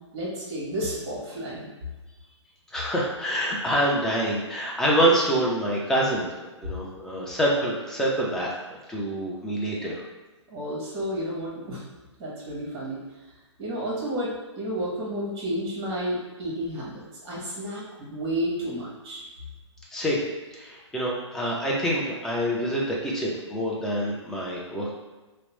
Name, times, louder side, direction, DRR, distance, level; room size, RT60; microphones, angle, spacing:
voice 1, 0.1-1.7 10.5-11.8 12.2-13.0 13.6-19.2, equal, 25° right, -5 dB, 1.0 m, -31 dB
voice 2, 2.7-6.3 6.6-8.5 8.9-10.0 19.9-20.2 20.5-24.9, right 1 dB, 5° left, -4 dB, 0.3 m, -26 dB
2.9 x 2.0 x 2.8 m, 1.2 s
figure-of-eight pair, 125°, 15 cm